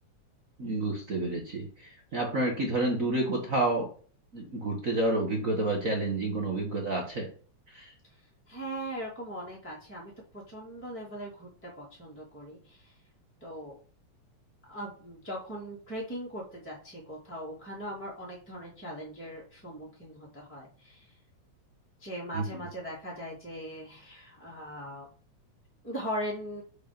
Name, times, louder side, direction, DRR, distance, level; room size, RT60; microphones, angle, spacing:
voice 1, 0.6-3.9 4.3-7.3 7.7-7.9 22.3-22.6, right 2 dB, 55° right, 1 dB, 0.9 m, -29 dB
voice 2, 8.5-12.9 13.4-13.8 14.7-21.1 22.0-25.1 25.8-26.6, equal, 5° left, -4 dB, 2.2 m, -40 dB
6.3 x 5.0 x 5.1 m, 0.43 s
omnidirectional pair, 3.3 m